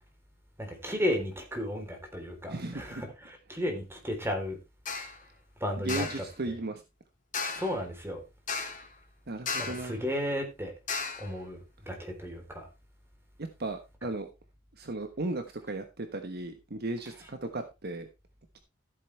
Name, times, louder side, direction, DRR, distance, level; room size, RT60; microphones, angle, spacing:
voice 1, 0.6-4.6 5.6-6.2 7.5-8.2 9.6-10.7 11.2-11.6 11.9-12.7 14.0-14.1, left 1 dB, 15° right, 3.5 m, -34 dB
voice 2, 2.5-3.0 5.8-6.8 9.3-10.0 13.4-14.3 14.8-18.1, right 2 dB, 55° right, 1.3 m, -36 dB
sound 1, 4.9-5.2 5.9-6.3 7.3-7.8 8.5-8.9 9.5-9.9 10.9-11.3, left 5 dB, 40° left, 3.1 m, -34 dB
14.0 x 8.0 x 3.3 m
head